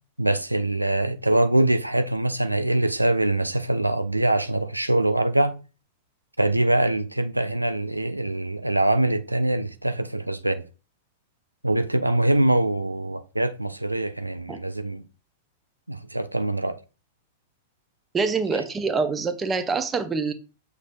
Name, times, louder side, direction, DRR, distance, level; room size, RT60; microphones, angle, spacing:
voice 1, 0.2-5.5 6.4-10.6 11.6-15.0 15.9-16.8, right 1 dB, 85° right, 0.3 m, -23 dB
voice 2, 18.1-20.3, right 4 dB, 15° right, 0.6 m, -25 dB
6.4 x 3.3 x 2.5 m
figure-of-eight pair, 95°, 0 cm